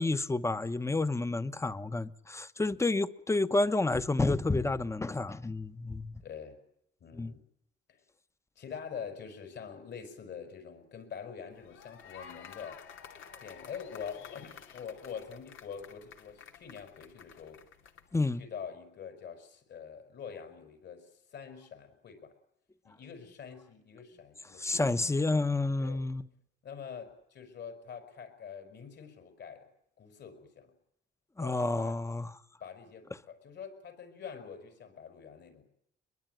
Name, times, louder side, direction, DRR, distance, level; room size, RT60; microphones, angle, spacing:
voice 1, 0.0-6.1 7.1-7.3 18.1-18.4 24.6-26.2 31.4-32.3, left 2 dB, 15° left, 1.1 m, -30 dB
voice 2, 6.2-6.6 7.0-7.4 7.9-8.0 8.6-12.8 13.4-17.6 18.4-22.3 22.8-24.9 25.8-26.0 26.6-29.7 30.0-30.7 31.4-32.0 32.6-35.6, left 7 dB, 60° left, 5.6 m, -45 dB
sound 1, 11.5-18.2, left 7 dB, 80° left, 2.6 m, -52 dB
22.5 x 22.0 x 9.3 m
cardioid pair, 90°, 20 cm